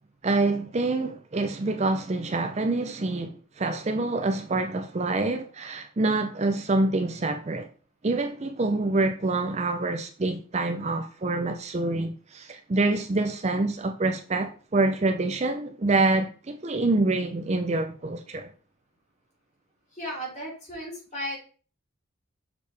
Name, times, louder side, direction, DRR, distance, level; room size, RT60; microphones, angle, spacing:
voice 1, 0.2-7.7 8.0-18.5, right 2 dB, 30° right, 0.5 m, -26 dB
voice 2, 19.9-21.4, equal, 35° left, 3.1 m, -35 dB
6.6 x 4.9 x 3.3 m
head